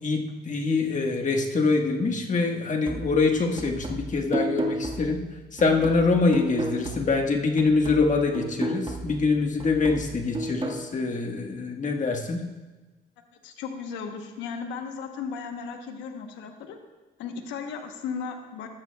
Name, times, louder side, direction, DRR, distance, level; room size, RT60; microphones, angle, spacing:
voice 1, 0.0-5.2 5.5-12.4, left 3 dB, 40° left, 3 dB, 1.5 m, -24 dB
sound 1, 2.9-7.3 7.6-10.9, right 2 dB, 25° right, 1.6 m, -33 dB
voice 2, 13.4-16.8 17.2-18.7, left 6 dB, 85° left, 5 dB, 1.0 m, -35 dB
13.5 x 11.0 x 2.3 m, 1.2 s
supercardioid pair, 70°, 19 cm